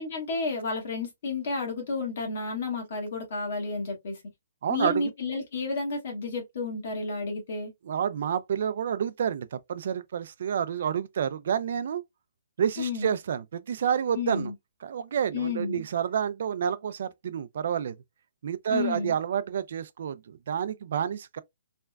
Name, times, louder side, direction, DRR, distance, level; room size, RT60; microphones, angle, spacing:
voice 1, 0.0-4.2 4.7-7.7 12.8-13.1 14.1-14.5 15.3-15.8 18.7-19.1, left 3 dB, 45° left, 1.4 m, -31 dB
voice 2, 4.6-5.1 7.8-12.0 12.6-14.5 14.8-18.0 18.4-21.4, right 8 dB, 45° right, 0.3 m, -29 dB
3.3 x 2.1 x 2.2 m
hypercardioid pair, 175°, 0 cm